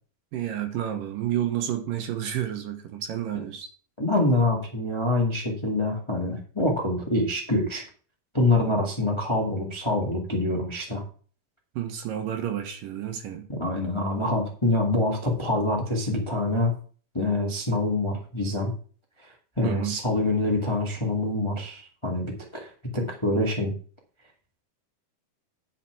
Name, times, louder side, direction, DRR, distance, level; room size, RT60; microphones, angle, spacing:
voice 1, 0.3-3.7 11.8-13.4 19.6-20.0, right 11 dB, 65° right, 2.6 m, -30 dB
voice 2, 4.0-7.8 8.3-11.0 13.5-16.7 17.1-18.7 19.2-19.3 19.6-23.7, left 2 dB, 20° left, 0.8 m, -25 dB
9.9 x 5.8 x 6.0 m
omnidirectional pair, 4.6 m